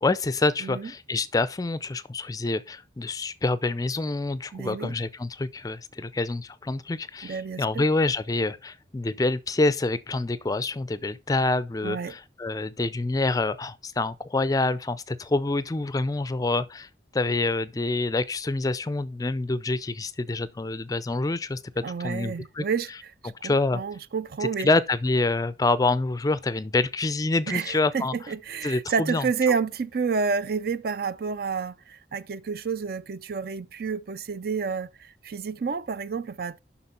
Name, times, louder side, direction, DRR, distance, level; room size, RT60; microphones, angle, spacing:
voice 1, 0.0-22.6 23.2-23.8 24.6-28.1 28.6-29.3, left 2 dB, 20° left, 0.4 m, -27 dB
voice 2, 4.5-5.0 7.2-7.8 11.8-12.2 21.8-23.1 23.4-24.7 27.5-36.6, right 5 dB, 55° right, 0.4 m, -30 dB
7.9 x 5.9 x 4.3 m
head